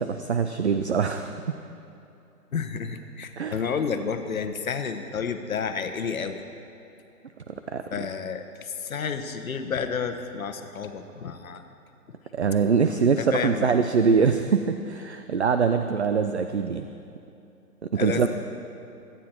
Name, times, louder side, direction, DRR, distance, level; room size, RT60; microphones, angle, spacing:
voice 1, 0.0-1.5 3.4-3.6 7.5-7.8 12.3-16.9 17.9-18.3, right 6 dB, 45° right, 8 dB, 0.5 m, -23 dB
voice 2, 2.5-6.4 7.9-11.6 13.2-13.7 18.0-18.3, left 6 dB, 60° left, 8 dB, 1.2 m, -30 dB
22.5 x 9.7 x 4.4 m, 2.7 s
hypercardioid pair, 160°, 48 cm